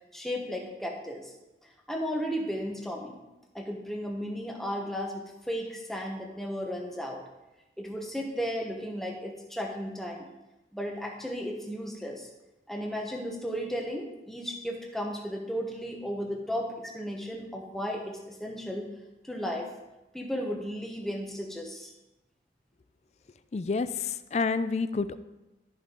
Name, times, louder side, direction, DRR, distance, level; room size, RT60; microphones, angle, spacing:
voice 1, 0.1-1.3 1.9-3.2 3.5-7.2 7.8-10.3 10.7-12.3 12.7-18.9 19.2-19.7 20.1-21.9, equal, ahead, 0 dB, 1.1 m, -34 dB
voice 2, 23.5-25.2, left 4 dB, 35° left, 13 dB, 0.4 m, -29 dB
13.0 x 5.5 x 3.9 m, 1.0 s
head